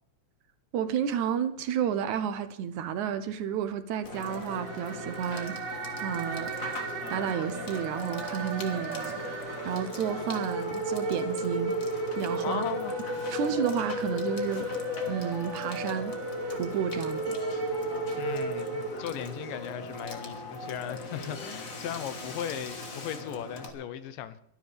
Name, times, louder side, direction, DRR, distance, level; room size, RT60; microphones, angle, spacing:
voice 1, 0.7-5.6 6.0-6.8 7.1-11.8 12.2-12.6 13.3-14.7 15.1-16.1 16.5-17.4, right 8 dB, 70° right, 1.9 m, -31 dB
Water / Water tap faucet / Sink (filling or washing), 4.0-23.7, left 2 dB, 45° left, 1.0 m, -41 dB
sound 1, 4.2-21.5, left 1 dB, 20° left, 3.5 m, -45 dB
sound 2, 4.2-19.5, right 2 dB, 50° right, 5.0 m, -34 dB
voice 2, 12.4-12.9 18.2-24.4, left 10 dB, 75° left, 2.4 m, -37 dB
23.0 x 11.5 x 3.4 m
omnidirectional pair, 4.1 m